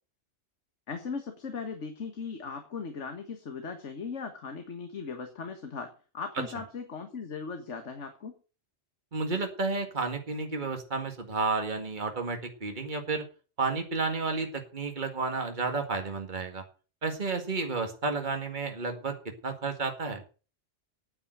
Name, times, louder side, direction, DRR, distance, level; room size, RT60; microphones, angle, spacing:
voice 1, 0.9-8.3, left 5 dB, 80° left, 6 dB, 1.8 m, -38 dB
voice 2, 9.1-13.2 13.6-16.6 17.0-19.2 19.4-20.2, right 3 dB, 40° right, 4 dB, 2.1 m, -31 dB
9.4 x 8.9 x 7.9 m, 0.37 s
omnidirectional pair, 1.2 m